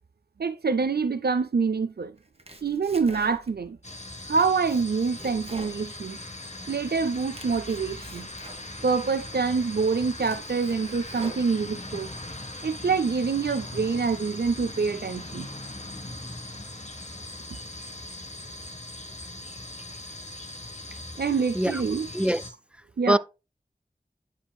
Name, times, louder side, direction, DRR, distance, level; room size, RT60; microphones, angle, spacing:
voice 1, 0.4-2.1 2.6-3.8 4.3-6.2 6.7-8.3 8.8-12.1 12.6-15.5 21.2-22.1 23.0-23.2, right 5 dB, 80° right, 0.5 m, -26 dB
Domestic sounds home sounds, 2.2-3.7 4.1-6.6 7.0-9.0 9.5-9.6 10.0-11.9, right 1 dB, 40° right, 1.5 m, -47 dB
sound 1, 3.8-22.5, left 1 dB, 45° left, 1.3 m, -40 dB
voice 2, 21.5-21.8 22.1-22.4 23.1-23.2, right 1 dB, 5° right, 0.4 m, -22 dB
10.0 x 4.9 x 2.3 m
wide cardioid pair, 40°, 16 cm